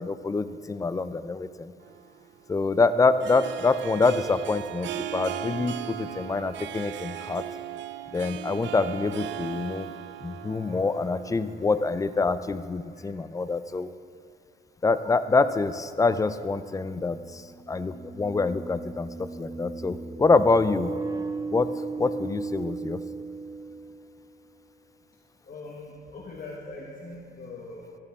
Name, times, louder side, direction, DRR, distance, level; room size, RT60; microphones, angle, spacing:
voice 1, 0.0-1.7 2.5-7.4 8.1-9.9 10.2-13.9 14.8-17.4 17.7-20.9 21.5-21.7 22.0-23.0, left 3 dB, 15° left, 13 dB, 0.5 m, -26 dB
Harp, 1.8-12.2, right 11 dB, 65° right, 0.5 m, -38 dB
sound 1, 17.6-24.4, right 3 dB, 20° right, 0.9 m, -36 dB
voice 2, 25.4-28.0, left 2 dB, 45° left, -3 dB, 1.6 m, -41 dB
13.0 x 12.5 x 3.6 m, 2.3 s
cardioid pair, 90°, 20 cm